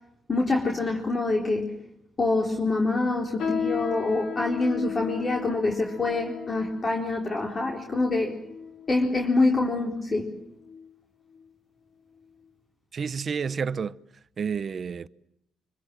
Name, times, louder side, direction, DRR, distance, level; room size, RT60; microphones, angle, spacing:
voice 1, 0.3-1.8 2.2-8.4 8.9-10.3, left 2 dB, 35° left, 4.2 m, -25 dB
sound 1, 3.4-9.1 9.7-9.9 10.6-10.9 11.3-11.5 12.2-12.3, left 6 dB, 70° left, 3.8 m, -35 dB
voice 2, 12.9-14.0 14.4-15.1, right 6 dB, 45° right, 0.9 m, -30 dB
26.0 x 25.0 x 7.6 m
cardioid pair, 90°, 0 cm